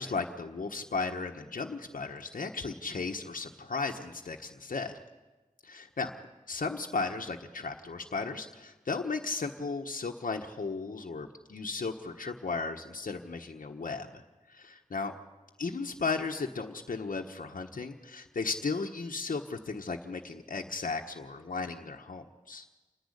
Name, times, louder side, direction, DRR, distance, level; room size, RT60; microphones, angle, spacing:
voice 1, 0.0-4.9 5.6-6.1 6.5-14.2 14.5-15.1 15.6-22.7, left 4 dB, 75° left, 2 dB, 1.3 m, -35 dB
28.5 x 10.5 x 9.9 m, 1.2 s
wide cardioid pair, 65°, 14 cm